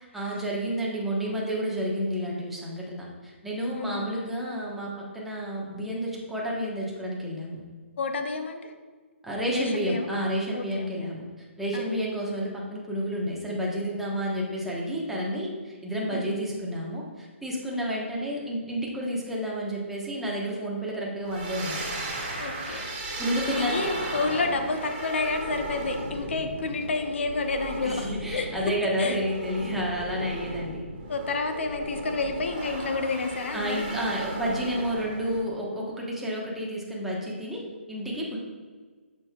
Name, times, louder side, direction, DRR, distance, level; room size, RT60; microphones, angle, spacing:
voice 1, 0.1-7.6 9.2-21.8 23.2-23.8 27.8-30.9 33.5-37.6 37.9-38.4, equal, 5° right, -4 dB, 1.2 m, -30 dB
voice 2, 3.7-4.1 8.0-8.7 9.5-10.1 10.5-11.1 11.7-12.0 16.1-16.3 17.6-17.8 22.4-23.2 23.5-28.5 29.0-29.2 31.1-33.8, left 3 dB, 65° left, 6 dB, 0.9 m, -30 dB
sound 1, 21.2-35.4, right 1 dB, 40° right, 1.7 m, -36 dB
7.3 x 6.5 x 2.4 m, 1.4 s
hypercardioid pair, 145°, 7 cm